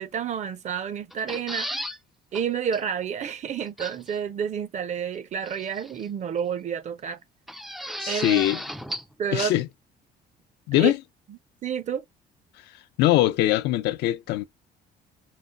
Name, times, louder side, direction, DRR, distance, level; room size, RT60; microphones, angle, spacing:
voice 1, 0.0-1.8 2.3-7.2 8.1-8.4 9.2-9.5 10.8-10.9 11.6-12.0, right 7 dB, 45° right, 0.7 m, -29 dB
sound 1, 1.1-2.0 2.3-2.4 2.7-2.8 3.8-4.2 5.5-6.1 7.5-9.1 9.4-9.5, equal, ahead, 0.4 m, -34 dB
voice 2, 8.0-8.6 9.3-9.7 10.7-11.0 13.0-14.4, left 15 dB, 80° left, 0.6 m, -22 dB
4.9 x 2.1 x 3.8 m
cardioid pair, 110°, 17 cm